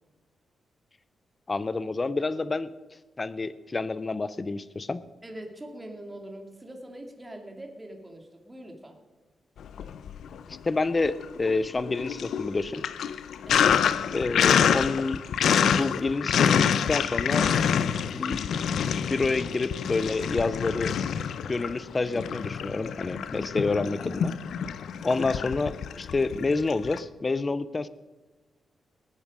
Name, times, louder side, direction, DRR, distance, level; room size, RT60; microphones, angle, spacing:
voice 1, 1.5-2.7 3.2-5.0 10.5-12.8 14.1-15.2 15.8-17.5 18.1-18.4 19.1-21.0 21.5-24.3 25.0-27.9, left 3 dB, 30° left, 16 dB, 0.6 m, -28 dB
voice 2, 5.2-9.0 13.5-13.7, right 1 dB, 15° right, 2 dB, 2.4 m, -43 dB
Sink (filling or washing), 9.7-10.6 10.9-27.0, left 8 dB, 80° left, 0.6 m, -27 dB
19.5 x 8.9 x 5.4 m, 1.2 s
cardioid pair, 105°, 0 cm